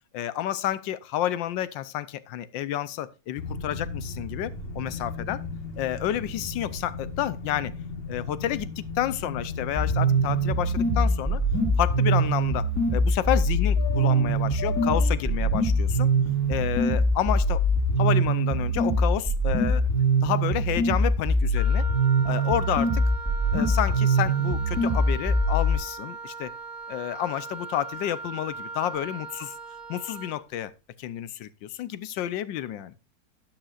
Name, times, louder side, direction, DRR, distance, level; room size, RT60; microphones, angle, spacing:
voice 1, 0.1-5.4 5.8-7.7 8.1-11.4 11.8-16.1 16.5-17.6 18.0-19.9 20.2-21.9 22.2-23.0 23.5-26.5 26.9-29.5 29.9-30.7 31.0-32.9, left 12 dB, 80° left, 1.4 m, -30 dB
sound 1, 3.4-18.1, left 4 dB, 35° left, 1.5 m, -37 dB
sound 2, 9.8-25.8, right 1 dB, 10° left, 2.4 m, -23 dB
Wind instrument woodwind instrument, 21.6-30.4, right 4 dB, 30° right, 1.2 m, -39 dB
12.0 x 8.9 x 2.5 m
omnidirectional pair, 2.0 m